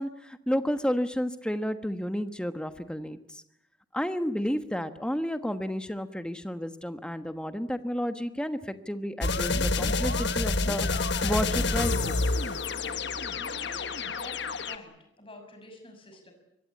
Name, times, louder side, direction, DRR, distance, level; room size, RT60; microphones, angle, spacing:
voice 1, 0.0-3.4 3.9-10.9 11.2-12.2, equal, 5° left, 9 dB, 1.2 m, -31 dB
sound 1, 9.2-14.8, left 3 dB, 55° left, 1.3 m, -28 dB
voice 2, 13.3-16.3, left 1 dB, 25° left, 5 dB, 6.2 m, -47 dB
25.0 x 22.0 x 8.5 m, 0.81 s
head